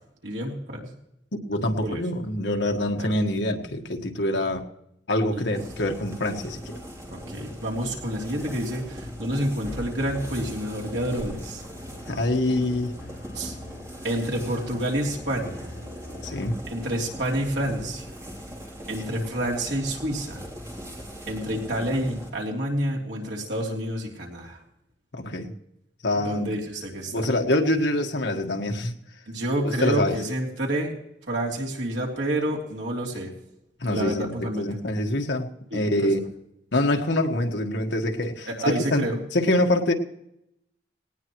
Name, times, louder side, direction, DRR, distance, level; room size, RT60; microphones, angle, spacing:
voice 1, 0.2-0.9 1.8-2.0 3.0-3.1 5.3-5.6 7.1-11.6 13.3-13.5 14.0-15.7 16.7-18.1 18.9-20.5 21.3-24.6 26.2-27.3 29.3-30.9 31.3-33.3 33.9-34.7 35.7-36.1 38.5-39.2, right 1 dB, 80° right, -2 dB, 3.3 m, -29 dB
voice 2, 1.5-4.6 5.1-6.7 12.1-12.9 16.2-16.6 25.1-25.5 26.0-26.6 27.1-28.9 29.6-30.2 33.8-36.2 36.7-39.9, left 1 dB, 75° left, 3 dB, 1.5 m, -25 dB
sound 1, 5.5-22.3, equal, 15° right, 3.1 m, -40 dB
Musical instrument, 10.0-16.8, left 1 dB, 60° left, 6.6 m, -44 dB
18.5 x 18.5 x 3.1 m, 0.80 s
head